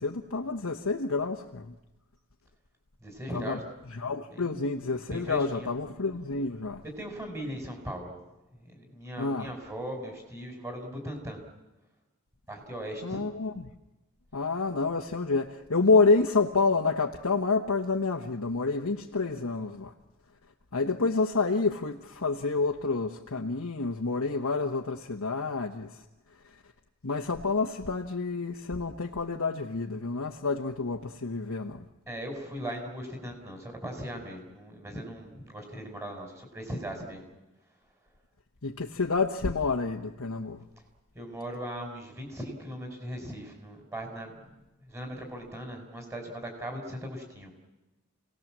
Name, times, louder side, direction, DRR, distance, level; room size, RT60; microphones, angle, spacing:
voice 1, 0.0-1.7 3.3-3.6 3.9-6.8 9.2-9.5 13.0-13.7 14.3-19.9 20.7-26.0 26.4-26.6 27.0-31.9 38.6-40.6, left 3 dB, 70° left, 1.2 m, -28 dB
voice 2, 3.0-3.6 4.3-4.5 5.1-5.7 7.0-8.2 8.5-11.4 12.5-13.3 32.1-37.2 41.1-44.5 44.9-47.5, equal, 15° right, 4.9 m, -38 dB
29.5 x 18.5 x 7.5 m
head